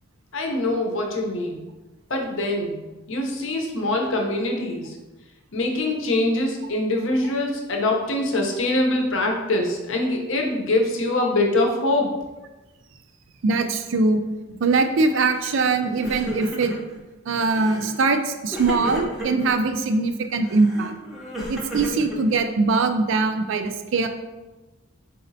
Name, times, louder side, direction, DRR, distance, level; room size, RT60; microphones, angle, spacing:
voice 1, 0.3-1.6 2.1-2.8 3.1-5.0 5.5-12.1, left 2 dB, 60° left, 1 dB, 0.7 m, -23 dB
voice 2, 13.4-14.2 14.5-16.7 17.3-20.9 21.5-24.1, right 3 dB, 60° right, 7 dB, 0.4 m, -22 dB
Crying sobbing, 15.4-15.7 15.9-17.0 17.5-17.9 18.5-19.5 20.4-22.7, equal, ahead, 0.6 m, -33 dB
4.2 x 4.0 x 2.6 m, 1.1 s
head